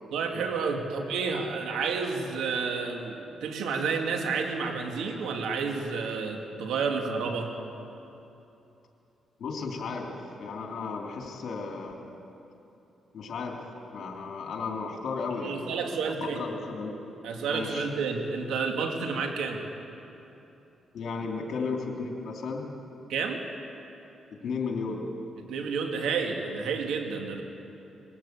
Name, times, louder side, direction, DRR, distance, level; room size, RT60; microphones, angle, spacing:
voice 1, 0.1-7.5 15.4-16.4 17.2-19.6 23.1-23.4 25.5-27.4, right 5 dB, 85° right, 3 dB, 2.2 m, -30 dB
voice 2, 9.4-12.0 13.1-13.6 13.9-15.6 16.0-16.9 17.5-17.9 20.9-22.6 24.4-25.1, left 4 dB, 70° left, 1 dB, 3.4 m, -34 dB
21.0 x 15.5 x 8.4 m, 2.9 s
cardioid pair, 85°, 0 cm